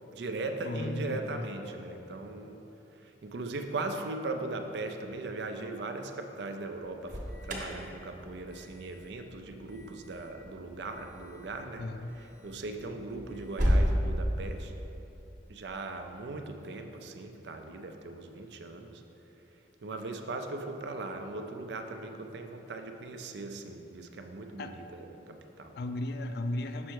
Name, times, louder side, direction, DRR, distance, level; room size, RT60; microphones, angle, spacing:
voice 1, 0.1-2.6 3.2-7.2 7.4-11.9 12.4-14.7 15.5-19.0 19.8-25.8, right 2 dB, 70° right, 6 dB, 0.5 m, -39 dB
voice 2, 0.6-1.4 11.8-12.2 24.6-24.7 25.8-26.9, left 1 dB, 60° left, 7 dB, 0.4 m, -35 dB
Alarm, 6.9-13.9, equal, 45° right, 1.0 m, -34 dB
6.1 x 4.4 x 4.6 m, 3.0 s
head